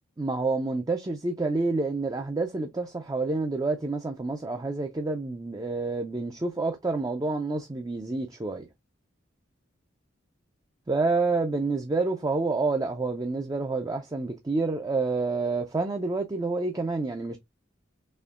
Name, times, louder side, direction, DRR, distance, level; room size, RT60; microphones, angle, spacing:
voice 1, 0.2-8.6 10.9-17.4, right 3 dB, 20° right, 0.4 m, -28 dB
4.2 x 2.9 x 2.3 m
head